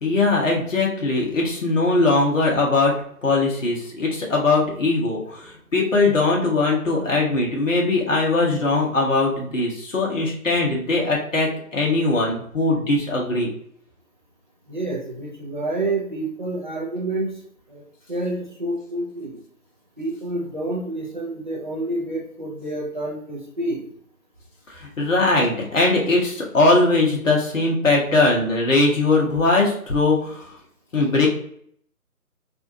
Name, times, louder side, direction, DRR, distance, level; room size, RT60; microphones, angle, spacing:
voice 1, 0.0-2.9 3.2-13.5 24.7-30.5 30.9-31.3, left 2 dB, 55° left, -2 dB, 1.3 m, -20 dB
voice 2, 14.7-17.3 17.7-17.8 18.1-19.4 20.0-23.8, right 2 dB, 35° right, -3 dB, 0.6 m, -28 dB
3.4 x 2.6 x 2.7 m, 0.63 s
figure-of-eight pair, 160°, 45 cm